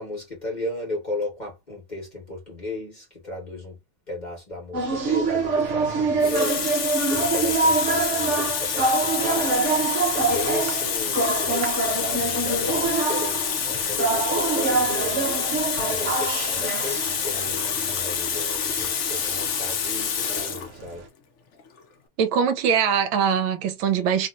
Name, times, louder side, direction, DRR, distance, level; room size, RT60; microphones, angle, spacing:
voice 1, 0.0-3.8 4.1-21.0, left 2 dB, 25° left, 1.4 m, -35 dB
sound 1, 4.7-21.0, right 3 dB, 45° right, 1.1 m, -26 dB
Water tap faucet, 5.4-5.6 6.2-20.7 21.6-21.8, left 7 dB, 75° left, 0.6 m, -27 dB
voice 2, 22.2-24.3, right 7 dB, 80° right, 1.5 m, -22 dB
3.4 x 2.9 x 2.5 m
omnidirectional pair, 2.2 m